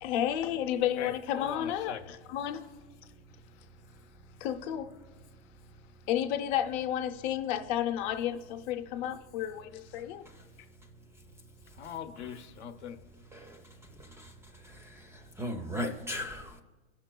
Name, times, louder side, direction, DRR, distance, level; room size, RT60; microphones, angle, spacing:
voice 1, 0.0-2.6 4.4-4.9 6.1-10.2, left 11 dB, 50° left, 0.7 m, -32 dB
voice 2, 1.0-2.1 11.7-13.0, left 8 dB, 85° left, 0.8 m, -41 dB
voice 3, 14.0-14.3 14.6-16.6, left 1 dB, 10° right, 0.4 m, -38 dB
16.5 x 5.8 x 2.3 m
hypercardioid pair, 120°, 33 cm